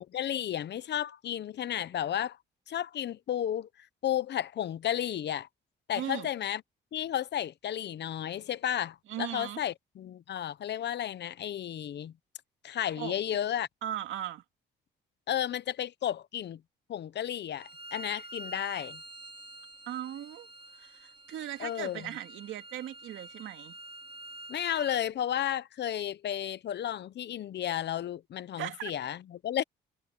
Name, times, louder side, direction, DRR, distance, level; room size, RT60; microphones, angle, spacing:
voice 1, 0.0-2.4 2.7-5.5 5.9-6.6 6.9-12.1 12.6-13.7 15.3-16.6 16.9-19.0 21.6-22.1 24.5-29.6, left 10 dB, 60° left, 0.9 m, -33 dB
voice 2, 5.9-6.3 9.1-9.6 13.0-13.2 13.8-14.4 19.9-20.5 20.8-23.8 28.6-28.9, right 11 dB, 80° right, 2.2 m, -38 dB
Bowed string instrument, 17.5-25.0, right 2 dB, 25° right, 5.1 m, -47 dB
cardioid pair, 90°, 20 cm